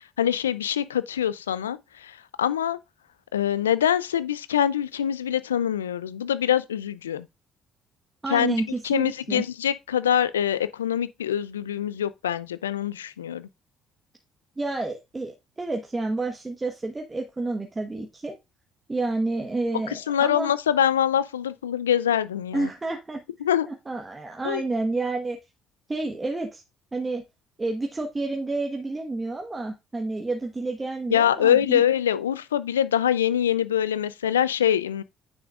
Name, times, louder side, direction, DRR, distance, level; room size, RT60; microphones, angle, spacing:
voice 1, 0.0-2.8 3.3-7.3 8.3-8.6 8.8-13.5 19.9-22.7 23.4-23.7 24.4-24.6 31.1-35.0, left 10 dB, 90° left, 0.3 m, -24 dB
voice 2, 8.2-9.4 14.6-18.4 18.9-20.5 22.5-23.2 23.6-25.4 25.9-26.6 26.9-27.2 27.6-31.8, right 2 dB, 25° right, 1.2 m, -29 dB
9.3 x 6.2 x 2.4 m
hypercardioid pair, 50°, 0 cm